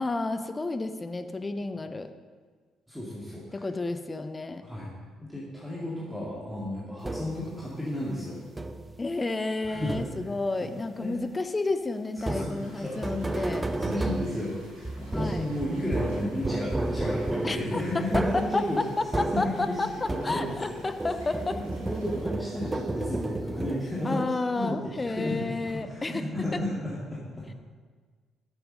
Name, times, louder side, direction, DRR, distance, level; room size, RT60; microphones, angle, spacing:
voice 1, 0.0-2.1 3.5-4.6 9.0-13.7 15.1-15.5 17.4-18.0 18.5-18.6 19.2-21.6 24.0-26.2 26.5-26.6, left 3 dB, 25° left, 9 dB, 0.7 m, -31 dB
voice 2, 2.9-3.7 4.6-4.9 5.2-8.4 9.6-10.0 10.6-10.7 11.0-11.1 12.2-13.0 13.3-18.8 19.3-20.9 21.6-24.2 24.5-27.6, left 1 dB, ahead, -7 dB, 2.2 m, -33 dB
sound 1, 7.0-7.6 8.6-9.0 9.9-10.4 12.2-20.7 21.0-24.2, right 2 dB, 20° right, 0.6 m, -32 dB
sound 2, 12.5-22.3, equal, 80° right, 3.1 m, -50 dB
9.8 x 6.9 x 5.4 m, 1.5 s
figure-of-eight pair, 45°, 0 cm